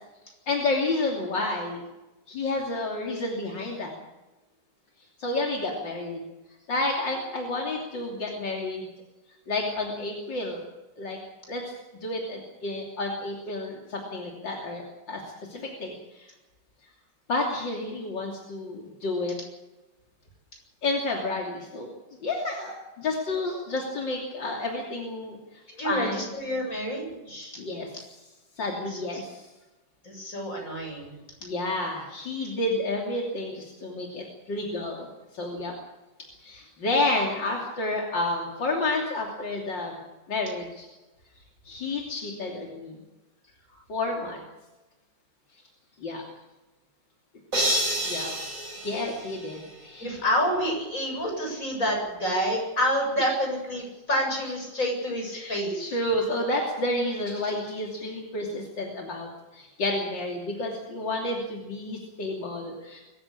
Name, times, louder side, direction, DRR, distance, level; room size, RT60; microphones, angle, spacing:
voice 1, 0.5-1.8 2.3-3.9 5.2-6.2 6.7-8.9 9.5-10.6 11.0-11.2 11.5-16.3 17.3-19.4 20.8-21.9 22.2-26.3 27.6-27.9 28.6-29.5 31.4-35.7 36.4-40.9 41.7-43.0 43.9-44.4 46.0-46.2 48.0-48.4 48.8-50.2 55.3-63.0, left 2 dB, 80° left, 0 dB, 3.7 m, -30 dB
voice 2, 25.7-27.6 28.9-29.1 30.0-31.2 50.0-55.9, equal, 45° left, 1 dB, 8.5 m, -28 dB
sound 1, 47.5-49.9, equal, 45° right, 6.8 m, -29 dB
23.5 x 15.5 x 8.7 m, 1.1 s
omnidirectional pair, 2.0 m